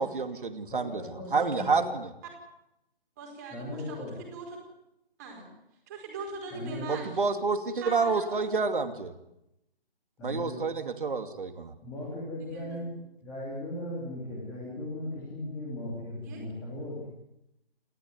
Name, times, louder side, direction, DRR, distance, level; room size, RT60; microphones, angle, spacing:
voice 1, 0.0-1.0 1.3-2.1 6.9-9.1 10.2-11.7, right 4 dB, 55° right, 7 dB, 2.7 m, -29 dB
voice 2, 0.7-1.9 3.5-4.2 6.5-6.9 10.2-10.7 11.8-12.9 13.2-17.1, left 1 dB, 5° left, -6 dB, 3.2 m, -37 dB
voice 3, 3.2-4.5 5.2-5.5 5.9-7.2 7.8-8.4 10.5-10.6 12.5-12.8 16.2-16.4, right 4 dB, 15° right, 1 dB, 4.7 m, -41 dB
29.5 x 13.5 x 9.6 m, 0.85 s
hypercardioid pair, 175°, 31 cm